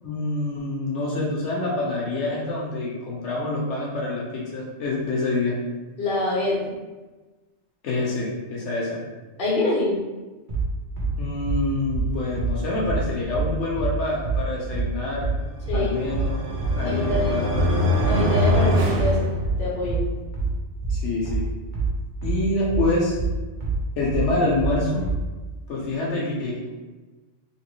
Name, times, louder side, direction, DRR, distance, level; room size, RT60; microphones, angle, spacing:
voice 1, 0.0-5.6 7.8-9.0 11.2-15.3 15.7-16.4 16.8-17.8 20.9-21.4 22.2-23.2 24.0-25.0 25.7-26.8, left 2 dB, 80° left, -4 dB, 1.0 m, -26 dB
voice 2, 6.0-6.7 9.4-10.0 11.0-11.1 15.7-16.0 16.8-17.3 18.1-20.1, left 2 dB, 55° left, -5 dB, 1.0 m, -25 dB
sound 1, 10.5-25.3, right 3 dB, 45° right, 0.9 m, -26 dB
sound 2, 15.6-19.9, left 1 dB, 80° right, 0.9 m, -24 dB
3.0 x 2.8 x 3.0 m, 1.2 s
omnidirectional pair, 1.2 m